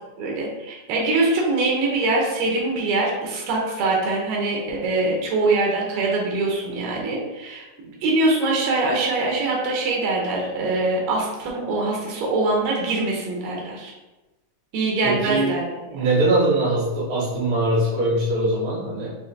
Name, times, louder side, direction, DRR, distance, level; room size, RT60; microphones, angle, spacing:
voice 1, 0.2-7.6 8.0-13.9 14.7-15.6 15.9-16.1, right 2 dB, 85° right, -3 dB, 2.4 m, -23 dB
voice 2, 15.0-15.5 15.9-19.1, right 2 dB, 55° right, -9 dB, 1.6 m, -22 dB
6.2 x 2.1 x 2.7 m, 1.1 s
omnidirectional pair, 3.9 m